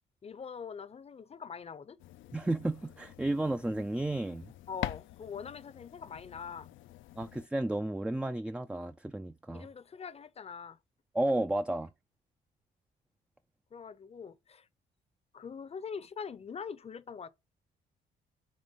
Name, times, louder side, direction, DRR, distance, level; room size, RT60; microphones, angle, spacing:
voice 1, 0.2-2.0 4.7-6.7 9.5-10.8 13.7-14.7 15.3-17.3, left 6 dB, 30° left, 0.6 m, -43 dB
sound 1, 2.0-7.5, left 14 dB, 80° left, 0.4 m, -45 dB
voice 2, 2.3-4.5 7.2-9.7 11.1-11.9, right 1 dB, 5° right, 0.3 m, -32 dB
5.1 x 3.4 x 5.5 m
cardioid pair, 90°, 20 cm